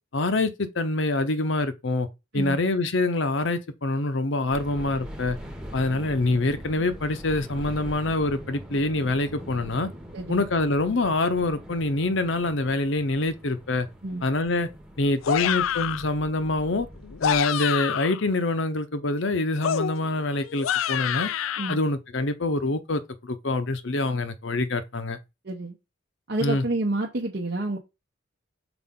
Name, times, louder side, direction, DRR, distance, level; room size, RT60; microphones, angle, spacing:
voice 1, 0.1-2.1 2.3-5.4 5.7-9.9 10.3-13.9 14.2-14.7 15.0-16.9 17.2-21.3 21.7-25.2 26.4-26.6, left 2 dB, 65° left, 0.8 m, -25 dB
sound 1, 4.5-17.4, equal, 5° right, 0.9 m, -42 dB
voice 2, 10.1-10.4 14.0-14.2 21.6-21.8 25.4-25.8 26.3-27.8, right 2 dB, 50° right, 0.8 m, -29 dB
sound 2, 15.2-16.1 17.0-18.2 19.6-21.8, left 10 dB, 80° left, 0.4 m, -27 dB
5.9 x 4.7 x 3.7 m
head